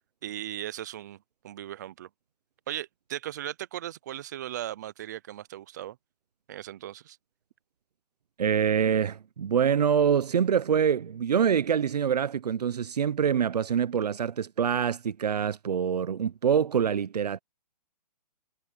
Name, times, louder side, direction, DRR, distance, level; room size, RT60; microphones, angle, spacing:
voice 1, 0.2-1.2 1.4-2.1 2.7-6.0 6.5-7.2, right 12 dB, 25° right, 0.5 m, -37 dB
voice 2, 8.4-17.4, right 7 dB, 80° right, 0.8 m, -25 dB
hypercardioid pair, 165°, 20 cm